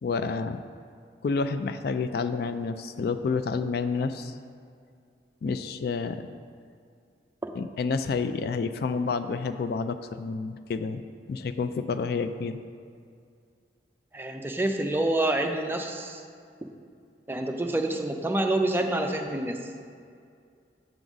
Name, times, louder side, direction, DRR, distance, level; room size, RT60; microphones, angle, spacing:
voice 1, 0.0-0.6 1.2-4.3 5.4-6.3 7.6-11.0 11.3-12.6, left 4 dB, 60° left, 10 dB, 0.3 m, -29 dB
voice 2, 14.1-16.2 17.3-19.6, right 1 dB, 10° right, 4 dB, 0.4 m, -27 dB
7.8 x 3.9 x 6.0 m, 2.3 s
head